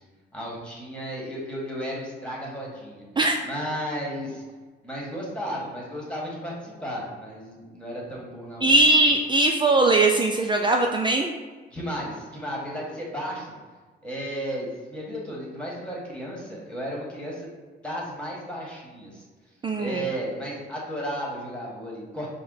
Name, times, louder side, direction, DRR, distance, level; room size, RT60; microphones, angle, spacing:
voice 1, 0.3-3.0 3.4-4.4 4.8-8.7 11.7-13.5 14.0-17.5 17.8-19.2 19.8-22.3, equal, 5° left, -4 dB, 1.4 m, -34 dB
voice 2, 8.6-11.3 19.6-20.0, right 2 dB, 25° right, 2 dB, 0.4 m, -20 dB
5.0 x 2.1 x 3.9 m, 1.4 s
cardioid pair, 90°, 20 cm